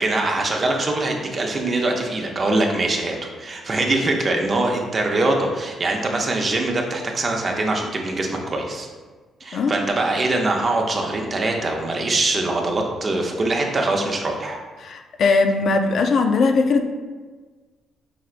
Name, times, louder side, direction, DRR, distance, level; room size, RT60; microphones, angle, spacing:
voice 1, 0.0-8.9 9.4-14.6, right 2 dB, 35° right, 1 dB, 0.6 m, -23 dB
voice 2, 14.8-16.8, left 4 dB, 60° left, 6 dB, 0.3 m, -19 dB
4.8 x 3.2 x 2.4 m, 1.4 s
cardioid pair, 90°, 0 cm